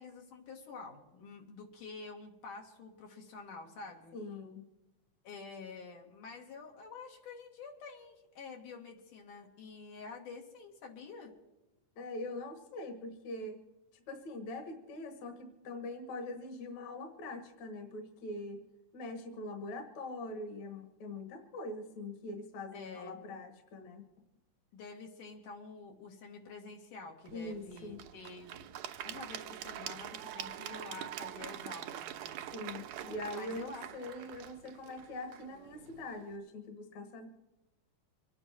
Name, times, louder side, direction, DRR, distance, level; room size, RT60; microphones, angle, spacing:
voice 1, 0.0-4.2 5.2-11.3 22.7-23.2 24.7-28.6 29.0-32.4 33.0-33.9, left 4 dB, 85° left, 1 dB, 3.7 m, -48 dB
voice 2, 4.1-4.6 12.0-13.6 13.9-18.6 18.9-24.0 27.3-28.0 32.5-37.3, left 2 dB, 65° left, 5 dB, 2.8 m, -43 dB
Applause / Crowd, 27.2-36.3, right 11 dB, 75° right, 2.1 m, -45 dB
25.0 x 9.9 x 4.5 m, 0.99 s
omnidirectional pair, 3.6 m